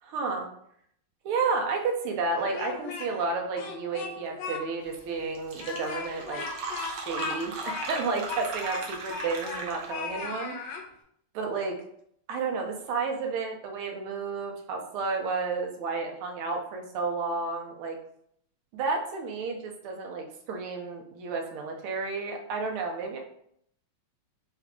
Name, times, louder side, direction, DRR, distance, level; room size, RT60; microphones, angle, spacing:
voice 1, 0.0-0.5 1.2-6.4 6.8-10.5 11.3-11.7 12.3-18.0 18.7-23.2, right 4 dB, 85° right, 2 dB, 1.6 m, -31 dB
Speech, 2.3-3.3 3.6-4.6 4.9-5.0 5.5-9.6 9.9-10.8, left 5 dB, 70° left, 1.1 m, -37 dB
Fill (with liquid), 5.0-5.1 5.3-10.1, right 3 dB, 65° right, 1.2 m, -37 dB
5.5 x 2.4 x 3.5 m, 0.70 s
omnidirectional pair, 2.3 m